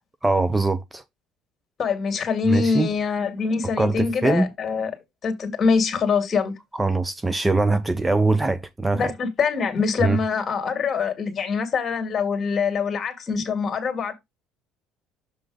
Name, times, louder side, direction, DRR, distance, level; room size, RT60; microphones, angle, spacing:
voice 1, 0.2-1.0 2.5-2.9 3.8-4.5 6.7-9.1 10.0-10.2, right 3 dB, 15° right, 0.6 m, -22 dB
voice 2, 1.8-4.9 5.2-6.5 8.9-14.1, left 5 dB, 35° left, 2.1 m, -24 dB
7.1 x 3.8 x 4.8 m
supercardioid pair, 90°, 0 cm